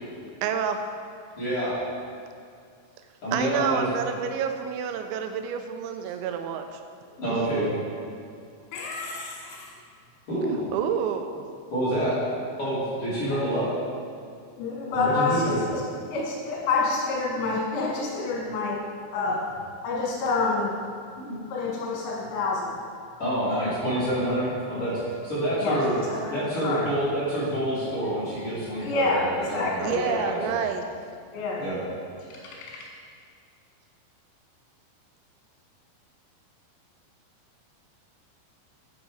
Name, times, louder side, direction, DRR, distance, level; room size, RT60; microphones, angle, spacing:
voice 1, 0.4-0.8 3.3-6.8 7.3-7.4 10.7-11.4 29.8-30.8, right 7 dB, 80° right, 7 dB, 2.9 m, -29 dB
voice 2, 1.4-1.8 3.2-3.8 7.2-7.7 10.3-10.6 11.7-12.2 12.6-13.7 14.9-15.6 21.2-21.4 23.2-25.0 25.2-25.9 26.3-30.6 31.6-31.8, right 1 dB, 40° left, -11 dB, 2.5 m, -27 dB
voice 3, 8.7-9.8 13.3-13.4 14.6-15.8 16.1-18.8 19.1-19.4 19.8-20.7 21.5-22.8 25.6-25.8 26.1-26.3 26.6-26.8 28.8-30.3 31.3-31.6 32.6-32.7, left 3 dB, 80° left, -3 dB, 3.7 m, -27 dB
11.0 x 5.3 x 4.8 m, 2.3 s
omnidirectional pair, 5.4 m